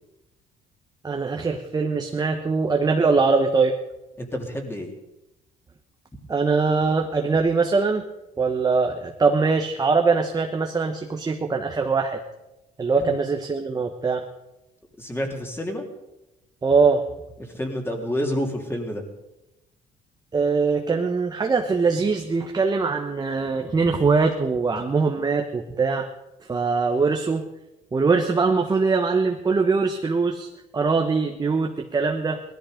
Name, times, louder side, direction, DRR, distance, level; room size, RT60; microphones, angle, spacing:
voice 1, 1.0-3.8 6.3-8.0 8.4-12.2 12.8-14.3 16.6-17.0 20.3-26.1 26.5-27.4 27.9-32.4, right 4 dB, 25° right, 3 dB, 1.2 m, -22 dB
voice 2, 4.2-4.9 13.0-13.2 15.0-15.9 17.4-19.0, equal, 15° left, 2 dB, 3.1 m, -29 dB
18.5 x 13.5 x 5.2 m, 0.94 s
cardioid pair, 110°, 17 cm